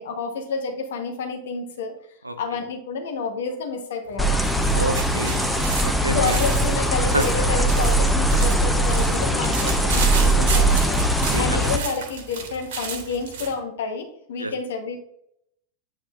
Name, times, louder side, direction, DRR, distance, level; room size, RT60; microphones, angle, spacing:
voice 1, 0.0-1.9 2.4-4.3 6.1-15.0, left 4 dB, 60° left, 4 dB, 1.2 m, -29 dB
sound 1, 4.1-13.6, right 5 dB, 55° right, 1.5 m, -33 dB
sound 2, 4.2-11.8, right 1 dB, 5° left, 0.6 m, -21 dB
voice 2, 4.7-6.4 7.1-7.2 11.3-11.7 14.4-14.5, right 2 dB, 85° right, 9 dB, 0.5 m, -28 dB
8.7 x 4.4 x 2.6 m, 0.73 s
figure-of-eight pair, 90°, 0 cm